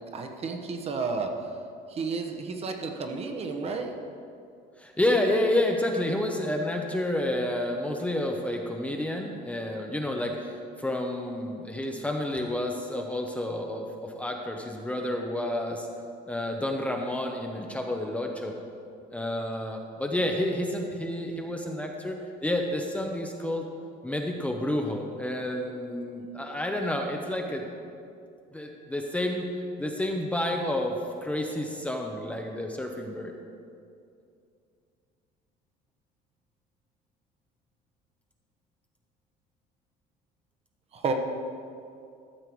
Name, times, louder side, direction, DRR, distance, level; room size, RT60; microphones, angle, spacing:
voice 1, 0.1-1.3 1.9-3.9 40.9-41.1, right 4 dB, 35° right, 4 dB, 1.0 m, -31 dB
voice 2, 4.8-15.9 16.3-18.5 19.1-23.7 24.0-27.8 28.5-29.5 29.8-33.3, left 1 dB, 10° left, 2 dB, 0.7 m, -30 dB
13.0 x 6.7 x 4.6 m, 2.5 s
cardioid pair, 130°, 17 cm